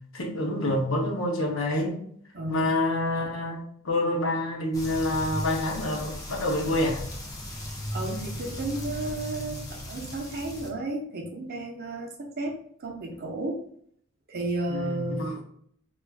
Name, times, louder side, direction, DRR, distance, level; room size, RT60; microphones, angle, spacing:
voice 1, 0.1-2.0 2.5-7.0 14.7-15.4, left 1 dB, 65° left, 0 dB, 0.7 m, -27 dB
voice 2, 2.3-2.7 7.9-12.5 12.8-13.6 14.3-15.3, right 2 dB, 50° right, 2 dB, 0.6 m, -33 dB
sound 1, 4.7-10.7, equal, 15° left, 0.6 m, -36 dB
4.6 x 2.3 x 2.2 m, 0.64 s
head